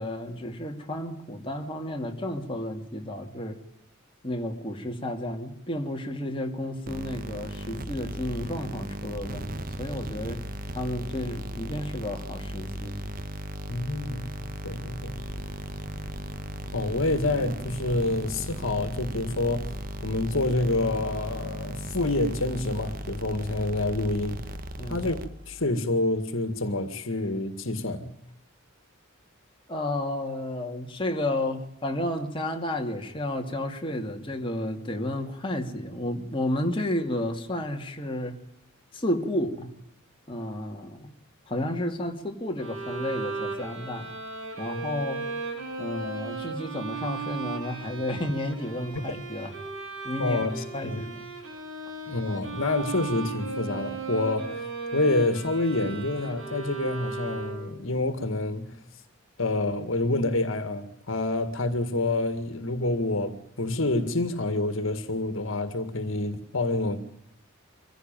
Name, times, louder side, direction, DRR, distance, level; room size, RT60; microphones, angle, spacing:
voice 1, 0.0-3.6 4.2-10.4 10.7-13.0 24.8-25.1 29.7-38.4 38.9-39.7 40.3-41.1 41.5-44.1 44.6-45.3 45.8-49.5 50.0-50.4 50.7-51.2, left 1 dB, 25° left, 2.6 m, -32 dB
sound 1, 6.9-25.6, right 1 dB, 40° right, 1.2 m, -37 dB
voice 2, 13.7-14.4 14.6-15.2 16.7-19.8 20.0-24.5 24.9-28.1 49.0-49.1 50.2-51.0 52.1-54.6 54.9-58.8 59.4-67.0, left 2 dB, 70° left, 2.0 m, -27 dB
sound 2, 15.0-20.1, equal, 10° left, 5.7 m, -44 dB
Bowed string instrument, 42.6-57.9, right 4 dB, 65° right, 7.3 m, -36 dB
24.5 x 16.5 x 9.1 m
head